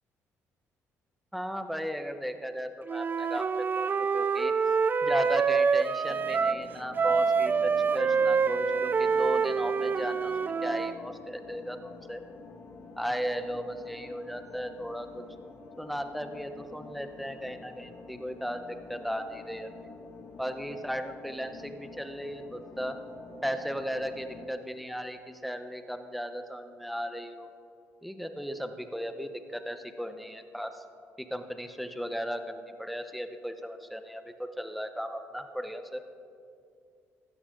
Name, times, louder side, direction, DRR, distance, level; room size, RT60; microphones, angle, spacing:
voice 1, 1.3-4.5 5.0-10.3 10.6-12.2 13.0-15.2 15.8-19.7 20.4-23.0 23.4-27.5 28.0-30.8 31.2-36.0, equal, ahead, 8 dB, 0.9 m, -36 dB
Wind instrument woodwind instrument, 2.9-6.6 6.9-11.0, right 5 dB, 35° right, 0.4 m, -26 dB
sound 1, 6.1-24.5, left 3 dB, 55° left, 2.0 m, -48 dB
16.0 x 12.5 x 3.8 m, 2.4 s
cardioid pair, 90°, 6 cm